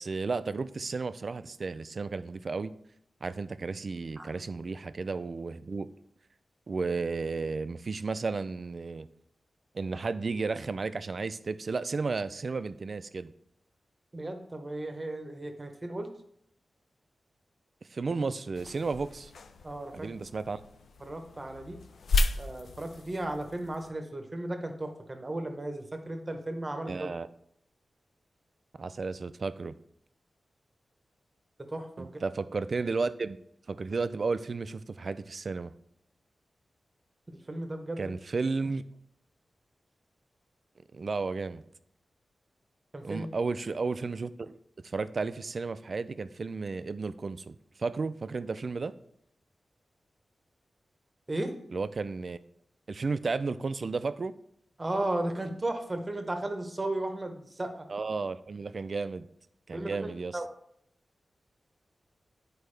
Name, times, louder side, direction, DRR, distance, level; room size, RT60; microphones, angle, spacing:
voice 1, 0.0-2.7 3.2-5.9 6.7-9.1 9.7-13.3 17.9-19.3 19.9-20.6 26.9-27.3 28.8-29.8 32.0-33.4 33.7-35.7 38.0-38.8 40.9-41.6 43.0-44.6 44.9-48.9 51.7-52.4 52.9-54.3 57.9-59.3 59.7-60.4, right 4 dB, 45° right, 13 dB, 0.3 m, -33 dB
voice 2, 14.1-16.1 19.6-20.1 21.0-21.8 22.4-27.1 31.7-32.2 37.5-38.0 42.9-43.3 51.3-51.5 54.8-57.9 59.7-60.5, right 1 dB, 20° right, 6 dB, 0.8 m, -35 dB
sound 1, 18.5-23.9, left 2 dB, 90° left, 0.5 m, -34 dB
10.5 x 4.6 x 3.3 m, 0.71 s
wide cardioid pair, 165°, 0 cm